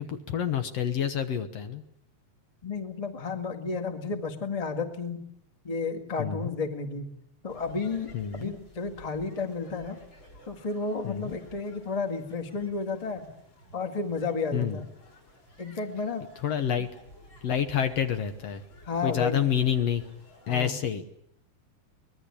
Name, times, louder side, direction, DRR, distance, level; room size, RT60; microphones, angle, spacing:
voice 1, 0.0-1.8 6.2-6.5 8.1-8.5 11.0-11.4 14.5-14.8 16.4-16.9 17.4-18.6 19.0-20.0 20.5-21.0, left 9 dB, 60° left, 9 dB, 2.1 m, -28 dB
voice 2, 2.6-5.2 5.6-7.1 7.4-10.0 10.5-13.3 13.7-14.8 15.6-16.3 18.9-19.4 20.5-20.7, left 4 dB, 15° left, 7 dB, 1.3 m, -32 dB
sound 1, 7.5-20.5, equal, 35° left, 7.4 m, -54 dB
24.5 x 20.0 x 8.6 m, 0.71 s
omnidirectional pair, 3.5 m